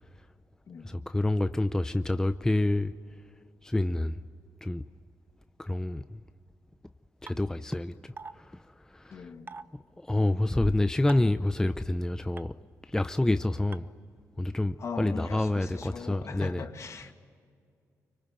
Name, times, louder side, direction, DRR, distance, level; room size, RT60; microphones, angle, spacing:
voice 1, 0.8-2.9 3.6-4.2 4.6-4.8 5.6-6.2 7.2-8.4 8.9-9.2 10.0-12.5 12.9-13.9 14.4-16.6, left 1 dB, 10° left, 0.6 m, -28 dB
sound 1, 7.3-7.4 8.2-8.3 9.5-9.6 11.1-11.3 12.4-12.5 13.7-13.8, right 4 dB, 35° right, 0.9 m, -41 dB
voice 2, 9.1-9.5 14.8-17.1, left 5 dB, 55° left, 2.3 m, -39 dB
25.0 x 25.0 x 9.2 m
cardioid pair, 85°, 6 cm